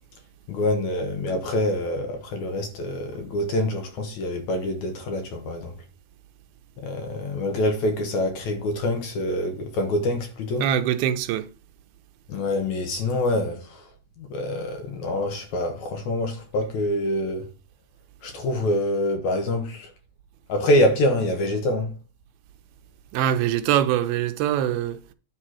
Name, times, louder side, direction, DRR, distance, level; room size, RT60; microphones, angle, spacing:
voice 1, 0.5-5.8 6.8-10.7 12.3-13.9 14.2-17.5 18.2-19.9 20.5-21.9, left 1 dB, 65° left, 2.2 m, -25 dB
voice 2, 10.6-11.5 23.1-25.0, right 11 dB, 90° right, 2.6 m, -23 dB
9.6 x 4.3 x 6.1 m
omnidirectional pair, 4.3 m